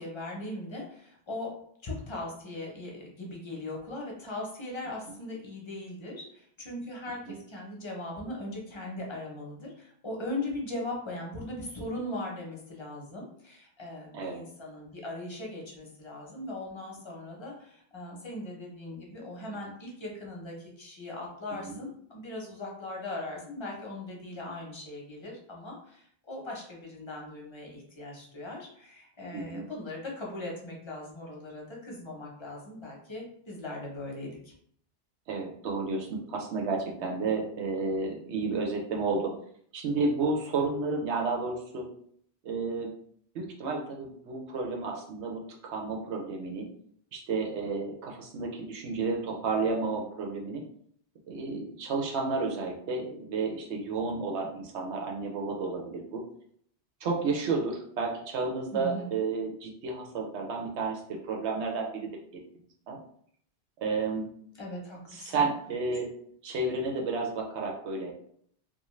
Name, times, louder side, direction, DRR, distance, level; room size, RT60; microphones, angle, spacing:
voice 1, 0.0-1.5 1.8-34.5 58.7-59.1 64.5-65.5, left 2 dB, 30° left, -2 dB, 0.6 m, -39 dB
voice 2, 29.3-29.6 35.3-39.3 39.7-41.9 42.4-42.9 43.3-46.7 47.1-50.6 51.3-56.2 57.0-62.1 62.9-63.0 63.8-64.3 65.1-66.1 66.4-68.1, right 3 dB, 90° right, 0 dB, 0.9 m, -31 dB
2.6 x 2.2 x 3.0 m, 0.64 s
omnidirectional pair, 1.1 m